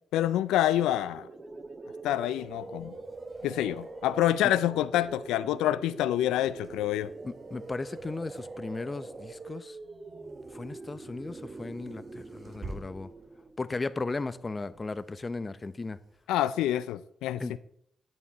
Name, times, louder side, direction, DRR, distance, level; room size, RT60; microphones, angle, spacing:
voice 1, 0.1-1.3 2.0-2.9 3.4-7.1 16.3-17.4, left 13 dB, 90° left, 0.3 m, -27 dB
sound 1, 0.9-13.7, right 3 dB, 35° right, 1.0 m, -44 dB
sound 2, 2.4-16.2, right 2 dB, 55° right, 2.9 m, -53 dB
voice 2, 7.2-9.8 10.5-13.1 13.6-16.0 17.4-17.6, left 3 dB, 35° left, 0.8 m, -36 dB
10.5 x 8.7 x 4.1 m
supercardioid pair, 50°, 0 cm